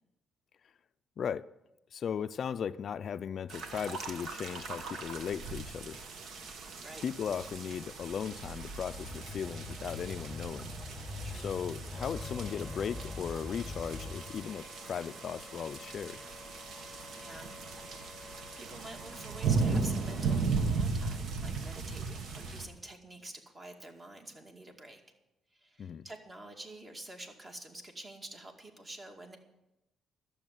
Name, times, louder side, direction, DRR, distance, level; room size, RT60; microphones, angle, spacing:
voice 1, 1.2-1.5 1.9-6.0 7.0-10.7 11.3-16.2 25.8-26.0, left 7 dB, 55° left, 0.3 m, -37 dB
sound 1, 3.5-22.6, right 4 dB, 70° right, 1.5 m, -37 dB
sound 2, 8.9-14.2, left 3 dB, ahead, 1.7 m, -43 dB
Wind instrument woodwind instrument, 11.9-20.4, left 2 dB, 15° left, 1.0 m, -52 dB
voice 2, 16.8-18.2 18.5-25.0 25.5-29.4, right 1 dB, 30° right, 2.3 m, -48 dB
12.5 x 7.1 x 9.1 m
cardioid pair, 90°, 0 cm